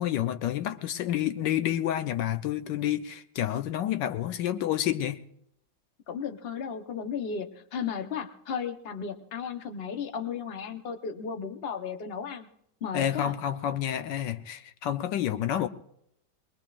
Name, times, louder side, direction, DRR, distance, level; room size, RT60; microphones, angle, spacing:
voice 1, 0.0-5.2 12.9-15.7, left 11 dB, 85° left, 1.4 m, -29 dB
voice 2, 6.1-12.5 12.8-13.3, left 6 dB, 40° left, 1.1 m, -35 dB
22.5 x 21.5 x 2.5 m
omnidirectional pair, 1.9 m